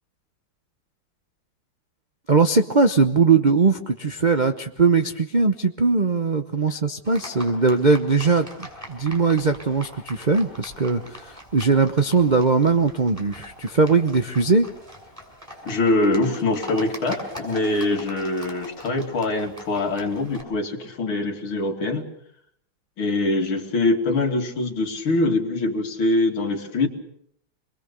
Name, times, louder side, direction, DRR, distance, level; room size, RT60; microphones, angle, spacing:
voice 1, 2.3-14.7, right 4 dB, 45° right, 7 dB, 0.5 m, -20 dB
Livestock farm animals working animals, 7.0-20.4, equal, 15° right, 6.1 m, -41 dB
voice 2, 15.6-22.1 23.0-26.9, left 2 dB, 75° left, 3 dB, 3.2 m, -23 dB
27.0 x 21.5 x 6.8 m, 0.69 s
omnidirectional pair, 2.3 m